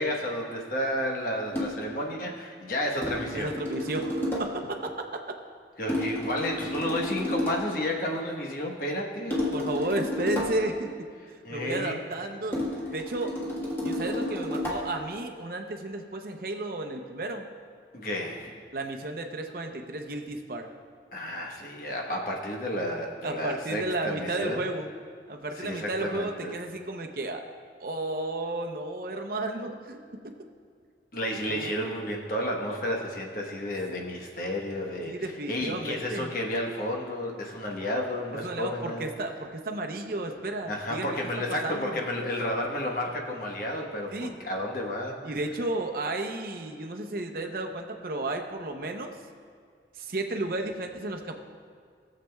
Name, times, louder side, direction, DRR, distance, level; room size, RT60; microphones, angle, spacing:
voice 1, 0.0-3.5 5.8-9.4 11.4-12.0 17.9-18.5 21.1-24.6 25.6-26.6 31.1-39.1 40.7-45.2, left 1 dB, 50° left, 0 dB, 1.1 m, -31 dB
sound 1, 1.5-1.9 3.0-4.7 5.9-7.8 9.3-10.8 12.5-15.1, left 1 dB, 15° left, 1.4 m, -31 dB
voice 2, 3.3-5.1 9.5-10.9 11.5-12.6 12.9-13.4 13.8-17.5 18.7-20.7 23.2-24.9 25.3-27.4 27.8-30.3 31.5-31.7 35.1-36.3 38.4-41.2 41.6-42.0 44.1-44.3 45.2-49.2 49.9-51.4, right 2 dB, 55° right, 4 dB, 0.7 m, -33 dB
18.5 x 7.5 x 2.3 m, 2.1 s
head